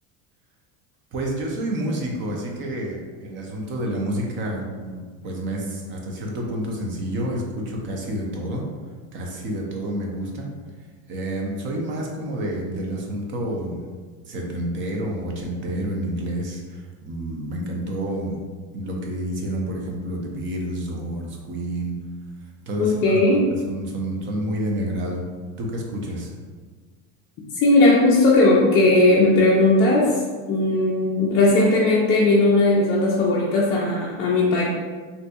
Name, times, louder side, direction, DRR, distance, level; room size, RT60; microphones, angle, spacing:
voice 1, 1.1-8.7 9.1-10.5 11.1-13.9 14.3-18.4 18.7-21.9 22.7-25.2 25.6-26.3, right 1 dB, 30° right, -1 dB, 0.5 m, -29 dB
voice 2, 22.8-23.4 27.6-30.1 30.5-34.6, left 2 dB, 35° left, -5 dB, 0.4 m, -17 dB
3.9 x 2.6 x 2.2 m, 1.5 s
cardioid pair, 150°, 40 cm